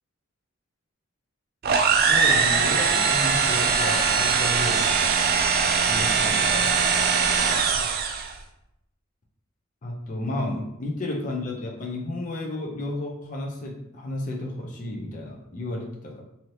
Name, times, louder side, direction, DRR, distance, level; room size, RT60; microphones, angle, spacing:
sound 1, 1.6-8.3, right 5 dB, 45° right, 0.3 m, -21 dB
voice 1, 2.1-4.8 5.8-6.8 9.8-16.2, left 1 dB, 35° left, -1 dB, 0.5 m, -32 dB
2.7 x 2.7 x 3.1 m, 0.81 s
head